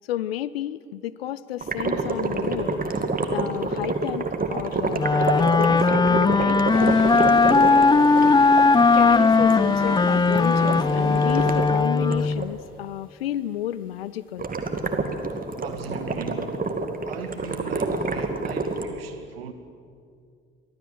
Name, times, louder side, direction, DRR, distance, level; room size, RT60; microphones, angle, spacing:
voice 1, 0.1-2.8 3.3-5.1 5.4-7.4 8.9-14.5, left 12 dB, 80° left, 0.6 m, -31 dB
sound 1, 1.6-12.5 14.4-18.8, right 3 dB, 30° right, 2.3 m, -28 dB
Wind instrument woodwind instrument, 5.0-12.5, left 4 dB, 15° left, 0.6 m, -18 dB
Toilet flush, 6.7-11.9, left 1 dB, 45° left, 4.9 m, -36 dB
voice 2, 15.6-16.6 17.1-19.5, right 7 dB, 80° right, 1.3 m, -38 dB
24.5 x 15.5 x 7.8 m
figure-of-eight pair, 40°, 30 cm